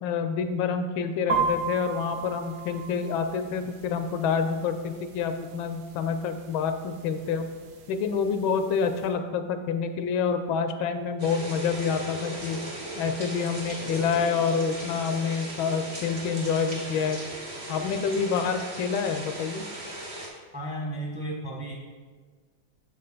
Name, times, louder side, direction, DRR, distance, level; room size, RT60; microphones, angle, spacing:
voice 1, 0.0-7.5 7.9-12.6 13.0-17.2 17.7-19.7, left 6 dB, 80° left, 8 dB, 1.4 m, -27 dB
sound 1, 1.3-9.1, right 5 dB, 65° right, 1.0 m, -36 dB
sound 2, 11.2-20.3, right 1 dB, 40° right, 1.4 m, -37 dB
voice 2, 20.5-21.7, right 1 dB, 5° right, -2 dB, 0.8 m, -33 dB
7.0 x 5.5 x 3.9 m, 1.4 s
omnidirectional pair, 2.2 m